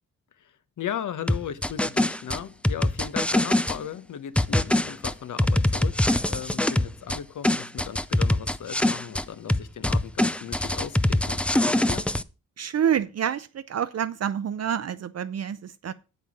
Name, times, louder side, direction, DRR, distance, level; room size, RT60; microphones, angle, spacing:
voice 1, 0.4-12.1, left 9 dB, 65° left, 1.1 m, -37 dB
sound 1, 1.3-3.8 4.4-7.2 7.4-9.2 9.5-12.2, left 1 dB, 5° left, 0.4 m, -23 dB
voice 2, 12.6-15.9, right 9 dB, 50° right, 0.6 m, -27 dB
8.1 x 8.1 x 5.3 m
cardioid pair, 105°, 33 cm